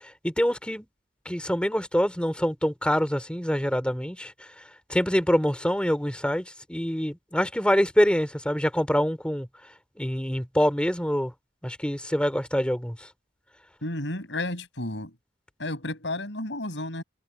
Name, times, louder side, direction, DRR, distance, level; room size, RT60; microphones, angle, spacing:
voice 1, 0.2-0.9 1.2-4.3 4.9-9.5 10.0-11.3 11.6-13.1, equal, 5° left, 2.7 m, -25 dB
voice 2, 13.8-15.2 15.6-17.0, left 1 dB, 75° left, 5.9 m, -32 dB
head